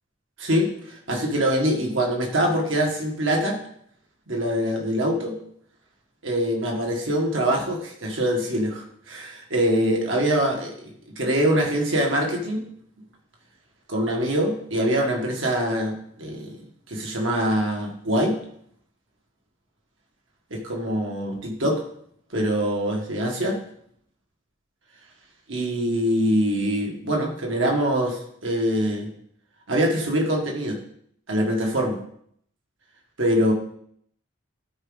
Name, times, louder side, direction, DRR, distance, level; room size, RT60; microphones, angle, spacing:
voice 1, 0.4-3.6 4.3-5.4 6.2-12.6 13.9-16.6 16.9-18.4 20.5-21.8 22.3-23.6 25.5-29.1 29.7-30.8 31.3-32.0 33.2-33.5, equal, 70° right, 0 dB, 1.9 m, -24 dB
12.5 x 4.9 x 4.0 m, 0.67 s
head